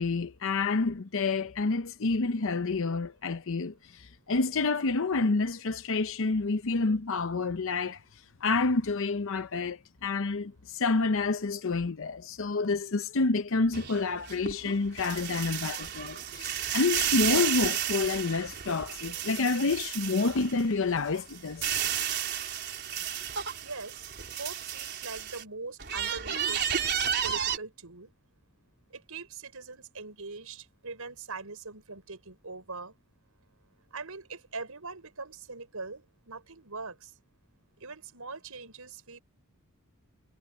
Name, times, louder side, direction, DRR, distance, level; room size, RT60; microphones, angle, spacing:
voice 1, 0.0-8.0 8.4-21.8, left 3 dB, 65° left, 0.7 m, -28 dB
sound 1, 13.7-20.7 21.1-25.4 25.8-27.6, right 9 dB, 50° right, 4.1 m, -32 dB
voice 2, 23.6-26.6 27.2-28.1 28.9-32.9 33.9-37.1 37.8-39.2, right 4 dB, 75° right, 5.4 m, -42 dB
head